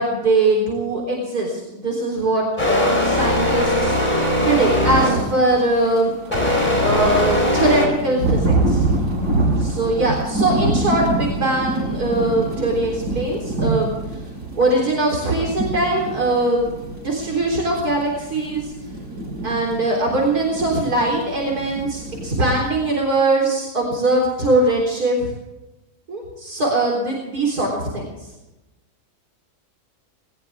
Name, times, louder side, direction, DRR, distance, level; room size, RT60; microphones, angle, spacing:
voice 1, 0.0-4.0 4.4-6.1 6.8-8.9 9.6-13.9 14.5-16.7 17.0-18.7 19.4-25.3 26.1-28.1, right 2 dB, 70° right, -1 dB, 4.3 m, -21 dB
sound 1, 2.6-5.4 6.3-7.9, left 1 dB, 25° left, 4.7 m, -19 dB
Thunder / Rain, 4.9-23.0, right 2 dB, 85° right, 6.2 m, -26 dB
20.0 x 20.0 x 3.6 m, 1.0 s
omnidirectional pair, 1.7 m